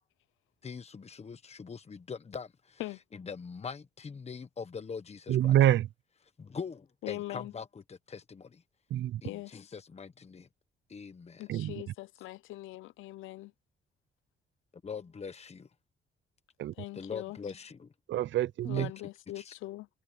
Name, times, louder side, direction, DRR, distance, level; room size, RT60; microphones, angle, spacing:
voice 1, 0.6-2.8 3.2-5.6 6.4-8.6 9.2-10.5 10.9-11.4 14.8-15.7 16.9-17.9 18.7-18.9 19.4-19.5, left 5 dB, 30° left, 1.3 m, -42 dB
voice 2, 5.3-5.9 8.9-9.2 11.5-11.7 16.6-16.7 18.1-18.9, right 12 dB, 70° right, 0.6 m, -26 dB
voice 3, 7.0-7.5 9.2-9.7 11.4-13.5 16.7-17.4 18.6-19.9, left 17 dB, 90° left, 0.7 m, -41 dB
cardioid pair, 90°, 20 cm